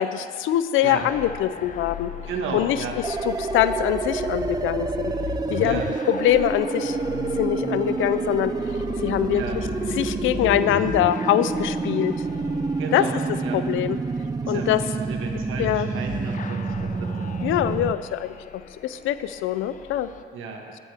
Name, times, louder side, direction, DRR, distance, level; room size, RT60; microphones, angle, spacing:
voice 1, 0.0-2.1 2.5-2.8 3.3-5.1 5.5-5.8 6.1-7.0 7.4-8.5 9.0-9.4 10.0-12.2 12.9-13.0 13.5-14.0 14.5-14.8 15.6-15.9 17.4-18.3 18.8-20.1, left 12 dB, 85° left, 13 dB, 0.5 m, -23 dB
sound 1, 0.8-20.2, left 7 dB, 40° left, 0.6 m, -38 dB
voice 2, 2.3-3.0 5.6-5.9 9.3-9.6 12.8-13.6 14.4-17.3 20.3-20.7, right 4 dB, 85° right, 2 dB, 1.5 m, -33 dB
sound 2, 3.0-17.9, right 4 dB, 20° right, 0.4 m, -28 dB
sound 3, 6.8-16.6 17.0-17.1, right 3 dB, 50° right, 1.8 m, -41 dB
17.5 x 8.6 x 3.5 m, 2.1 s
cardioid pair, 90°, 20 cm